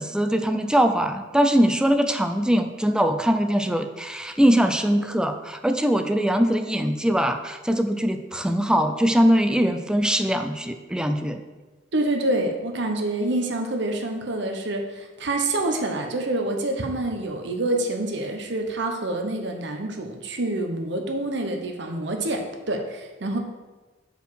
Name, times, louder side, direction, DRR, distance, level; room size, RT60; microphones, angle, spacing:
voice 1, 0.0-11.4, equal, 5° right, 7 dB, 0.4 m, -22 dB
voice 2, 11.9-23.4, right 2 dB, 65° right, 4 dB, 1.0 m, -27 dB
5.2 x 4.8 x 6.3 m, 1.2 s
head